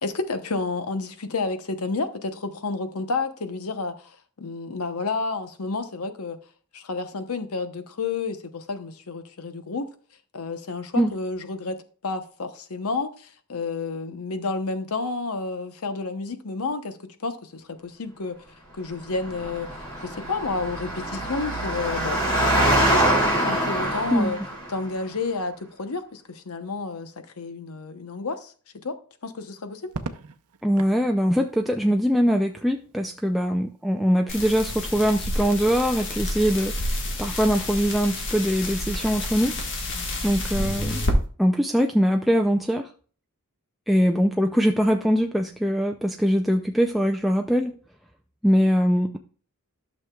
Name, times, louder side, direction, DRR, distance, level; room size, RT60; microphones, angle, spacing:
voice 1, 0.0-6.4 6.7-9.9 10.3-11.8 12.0-18.4 18.7-19.7 20.0-23.1 23.4-24.4 24.7-29.0 29.2-29.9, left 3 dB, 75° left, 0.9 m, -30 dB
Engine, 19.1-24.8, right 1 dB, 20° left, 2.4 m, -24 dB
Crackle, 29.9-31.0 32.6-33.2, right 4 dB, 85° right, 0.6 m, -37 dB
voice 2, 30.6-36.9 37.2-39.6 40.2-41.0 41.4-42.9 43.9-47.7 48.4-49.2, equal, ahead, 0.4 m, -22 dB
sound 1, 34.3-41.1, left 1 dB, 60° left, 1.6 m, -29 dB
12.0 x 6.4 x 2.3 m
head